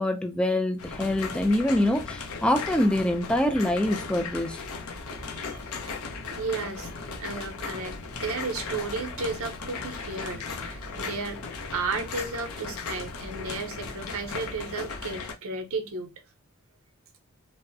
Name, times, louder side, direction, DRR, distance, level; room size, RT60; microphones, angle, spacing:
voice 1, 0.0-4.6, left 1 dB, 5° left, 0.3 m, -25 dB
sound 1, 0.8-15.3, left 4 dB, 75° left, 0.7 m, -37 dB
voice 2, 5.2-6.0 6.3-6.9 7.2-11.4 11.7-16.1, right 4 dB, 70° right, 0.7 m, -34 dB
3.3 x 2.0 x 2.6 m
head